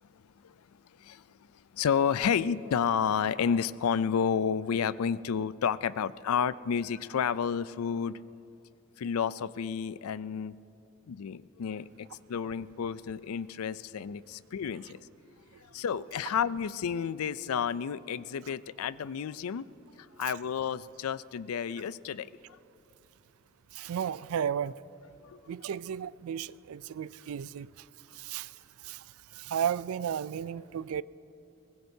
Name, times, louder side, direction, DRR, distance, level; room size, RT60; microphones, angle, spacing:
voice 1, 0.1-8.2 9.0-10.6 11.1-15.1 15.6-19.7 20.0-22.3 25.2-25.4, left 7 dB, 85° left, 17 dB, 0.4 m, -31 dB
voice 2, 23.7-24.7 25.5-27.7 28.1-28.5 28.8-29.0 29.3-31.0, right 8 dB, 80° right, 19 dB, 0.4 m, -33 dB
22.5 x 19.5 x 2.7 m, 2.8 s
head